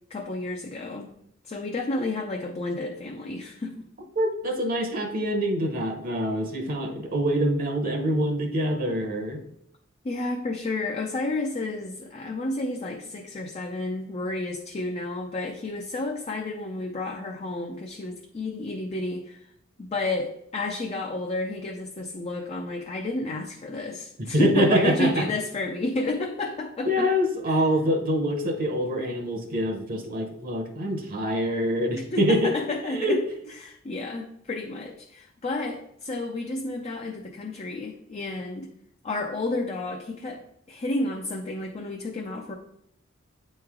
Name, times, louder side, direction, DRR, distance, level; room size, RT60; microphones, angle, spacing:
voice 1, 0.1-1.1 1.5-3.9 10.0-19.5 19.8-27.1 27.5-27.6 31.9-33.2 33.6-38.7 39.0-40.4 40.7-42.5, left 2 dB, 30° left, 2 dB, 0.4 m, -31 dB
voice 2, 4.2-9.4 24.3-25.2 26.9-32.5 32.9-33.2, equal, 45° right, 3 dB, 0.8 m, -25 dB
8.6 x 3.1 x 3.6 m, 0.75 s
head